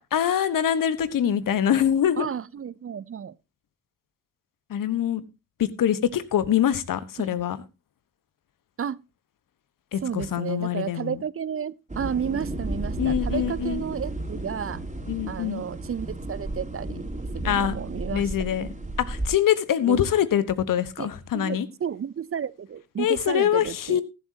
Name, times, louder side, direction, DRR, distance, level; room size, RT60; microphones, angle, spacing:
voice 1, 0.1-2.3 4.7-5.2 5.6-7.6 9.9-11.2 13.0-13.8 15.1-15.6 17.4-17.7 18.1-18.7 19.0-21.7 23.0-24.0, left 10 dB, 60° left, 1.3 m, -24 dB
voice 2, 2.2-3.3 7.2-7.3 8.8-9.0 10.0-14.8 15.3-17.0 17.3-18.3 19.9-20.0 21.0-24.0, right 8 dB, 40° right, 0.7 m, -32 dB
sound 1, 11.9-19.3, right 1 dB, 20° right, 3.4 m, -33 dB
15.0 x 12.0 x 2.9 m
hypercardioid pair, 40°, 36 cm